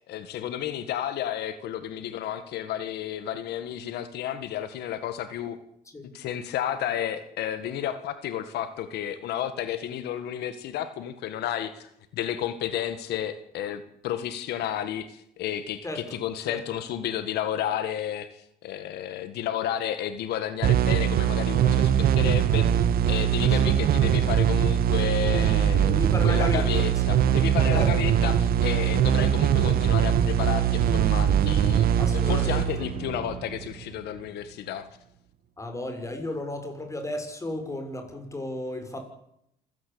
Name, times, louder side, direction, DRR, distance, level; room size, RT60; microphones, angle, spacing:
voice 1, 0.1-5.6 6.1-34.9, left 10 dB, 75° left, 11 dB, 1.8 m, -32 dB
voice 2, 15.8-16.2 16.5-16.6 23.5-23.7 25.9-26.6 27.1-27.3 27.7-27.9 32.0-32.9 35.6-39.0, left 1 dB, 20° left, 6 dB, 6.3 m, -34 dB
sound 1, 20.6-33.9, right 9 dB, 65° right, 1.6 m, -22 dB
27.5 x 16.0 x 8.7 m, 0.77 s
cardioid pair, 110°, 17 cm